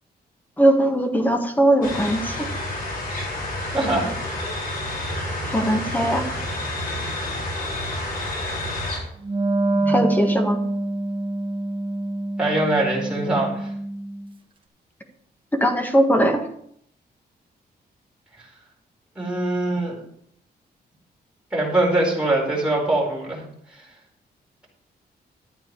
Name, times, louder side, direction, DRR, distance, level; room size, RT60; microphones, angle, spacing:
voice 1, 0.6-2.5 5.1-6.3 9.9-10.6 15.6-16.4, right 1 dB, 10° left, 4 dB, 1.6 m, -20 dB
sound 1, 1.8-9.0, left 1 dB, 55° left, 4.5 m, -29 dB
voice 2, 3.7-4.1 9.7-10.1 12.4-13.7 18.4-18.5 19.1-20.0 21.5-23.4 23.7-23.9, right 2 dB, 5° right, -4 dB, 4.5 m, -23 dB
Wind instrument woodwind instrument, 9.2-14.3, right 2 dB, 30° right, 1.4 m, -25 dB
12.0 x 9.1 x 4.7 m, 0.68 s
wide cardioid pair, 160°, 17 cm